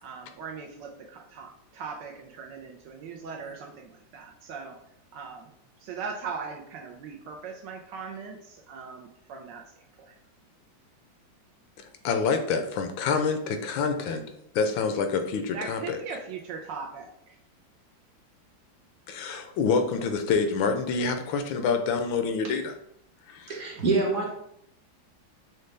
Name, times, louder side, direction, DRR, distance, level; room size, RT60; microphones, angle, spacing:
voice 1, 0.0-4.8 5.1-5.5 5.8-10.2 15.5-17.4, right 5 dB, 75° right, 2 dB, 1.1 m, -39 dB
voice 2, 11.8-14.2 14.5-16.0 19.1-22.7 23.3-23.5, left 5 dB, 80° left, 6 dB, 1.3 m, -27 dB
voice 3, 23.5-24.4, right 3 dB, 50° right, -2 dB, 1.3 m, -26 dB
6.4 x 2.2 x 3.3 m, 0.75 s
omnidirectional pair, 2.1 m